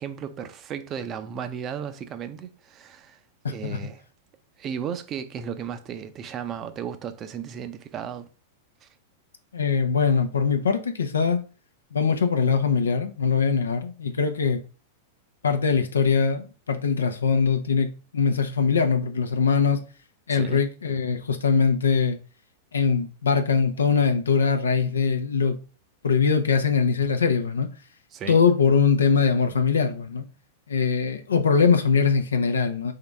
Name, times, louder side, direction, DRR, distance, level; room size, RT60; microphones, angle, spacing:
voice 1, 0.0-3.2 3.5-4.0 4.6-8.3 8.8-8.9 20.3-20.6 28.1-28.4, right 8 dB, 35° right, 0.6 m, -35 dB
voice 2, 3.4-3.8 9.5-11.4 11.9-14.6 15.4-17.9 18.1-19.8 20.3-22.2 22.7-25.6 26.0-27.7 28.3-30.2 30.7-32.9, left 5 dB, 85° left, 0.6 m, -22 dB
3.9 x 3.7 x 3.4 m
hypercardioid pair, 100°, 0 cm